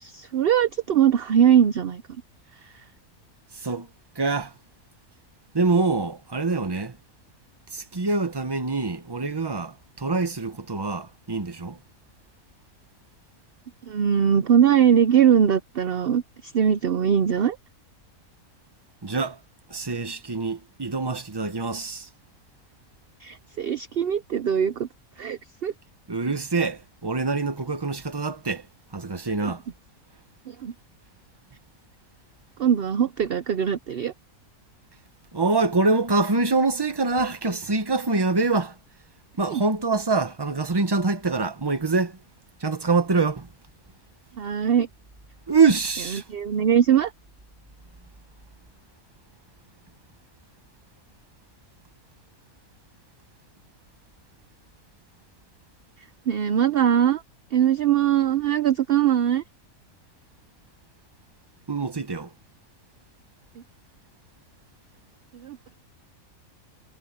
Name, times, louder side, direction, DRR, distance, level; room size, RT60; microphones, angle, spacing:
voice 1, 0.0-2.0 13.9-17.6 23.2-24.9 25.2-25.7 29.4-29.5 30.5-30.7 32.6-34.1 39.4-39.6 44.4-44.9 46.3-47.1 56.3-57.2 57.5-59.4 65.4-65.6, right 9 dB, 55° right, 0.7 m, -21 dB
voice 2, 3.5-3.9 4.1-4.5 5.5-7.0 7.7-11.8 19.0-19.4 19.7-22.1 26.1-28.7 28.9-29.6 35.3-38.8 39.4-42.2 42.6-43.5 45.5-46.2 61.7-62.3, right 3 dB, 20° right, 1.0 m, -25 dB
omnidirectional pair, 1.5 m